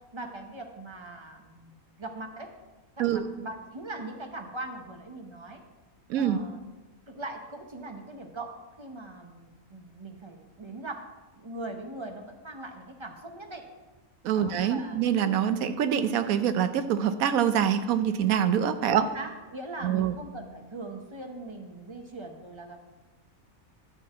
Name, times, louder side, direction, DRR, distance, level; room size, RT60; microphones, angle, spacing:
voice 1, 0.1-2.5 3.0-5.6 6.1-6.6 7.1-8.5 8.8-11.0 11.4-13.7 14.3-15.0 18.9-22.8, right 2 dB, 25° right, 4 dB, 0.7 m, -41 dB
voice 2, 6.1-6.4 14.2-19.0 19.8-20.2, right 9 dB, 75° right, 10 dB, 1.1 m, -25 dB
11.0 x 3.9 x 7.5 m, 1.2 s
omnidirectional pair, 1.5 m